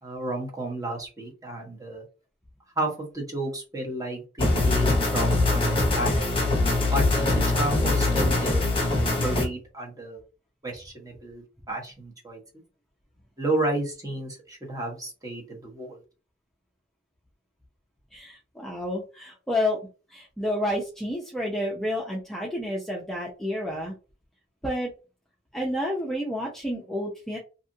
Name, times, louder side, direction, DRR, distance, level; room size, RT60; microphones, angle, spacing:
voice 1, 0.0-2.0 2.8-6.2 6.8-8.7 9.1-10.2 10.6-12.4 13.4-16.0, right 1 dB, 20° right, -1 dB, 1.0 m, -32 dB
sound 1, 4.4-9.5, left 2 dB, 30° left, 0.9 m, -23 dB
voice 2, 18.1-23.9 24.6-24.9 25.5-27.4, left 1 dB, ahead, -3 dB, 0.5 m, -30 dB
2.8 x 2.4 x 2.5 m, 0.33 s
head